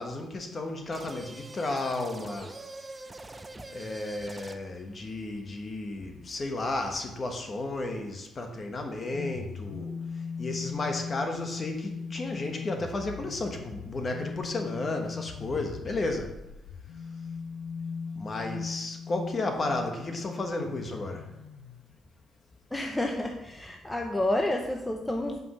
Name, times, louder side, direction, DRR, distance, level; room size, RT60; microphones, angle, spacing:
voice 1, 0.0-2.5 3.7-10.0 10.4-16.4 18.1-21.3, left 2 dB, 35° left, 4 dB, 1.3 m, -33 dB
sound 1, 0.9-4.8, right 2 dB, 20° right, 0.5 m, -44 dB
sound 2, 9.1-21.9, left 5 dB, 85° left, 0.6 m, -39 dB
voice 2, 22.7-25.4, left 1 dB, 10° left, 2 dB, 0.7 m, -29 dB
5.6 x 5.3 x 6.3 m, 0.91 s
cardioid pair, 90°, 0 cm